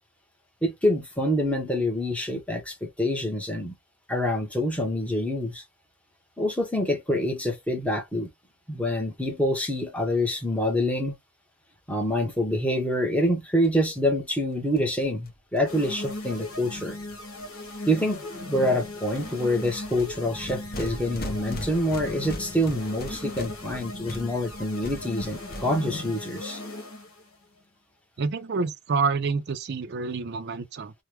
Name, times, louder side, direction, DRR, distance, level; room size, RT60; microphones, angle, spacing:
voice 1, 0.6-3.7 4.1-5.6 6.4-8.3 8.7-11.2 11.9-17.0 17.9-18.2 18.5-26.6, left 1 dB, 5° left, 0.8 m, -26 dB
sound 1, 13.6-13.7 14.0-14.1 14.3-14.4 14.5-17.7 18.1-18.5 18.7-26.0, left 1 dB, 45° left, 0.8 m, -40 dB
sound 2, 15.7-27.2, left 2 dB, 70° left, 1.2 m, -38 dB
voice 2, 28.2-30.9, right 4 dB, 50° right, 0.4 m, -28 dB
3.3 x 2.1 x 3.0 m
head